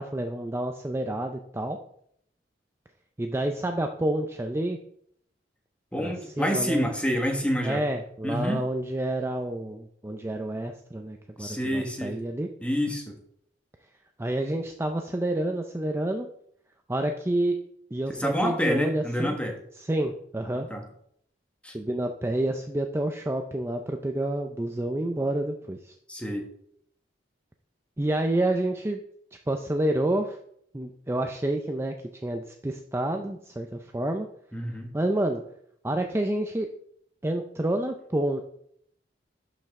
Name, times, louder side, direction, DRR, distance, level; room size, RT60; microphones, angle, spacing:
voice 1, 0.0-1.8 3.2-4.8 6.0-6.9 7.6-12.5 14.2-16.3 16.9-17.6 17.9-19.4 19.8-20.7 21.7-25.9 28.0-29.0 29.5-30.4 30.7-32.0 32.2-34.3 34.9-35.4 35.8-36.7 37.2-38.4, right 1 dB, 15° right, 4 dB, 0.5 m, -29 dB
voice 2, 5.9-7.8 8.2-8.6 11.4-12.2 12.6-13.2 18.2-19.6 20.5-20.8 21.6-21.8 26.1-26.4 34.5-34.9, equal, 5° left, 3 dB, 1.3 m, -28 dB
11.5 x 5.2 x 3.6 m, 0.68 s
head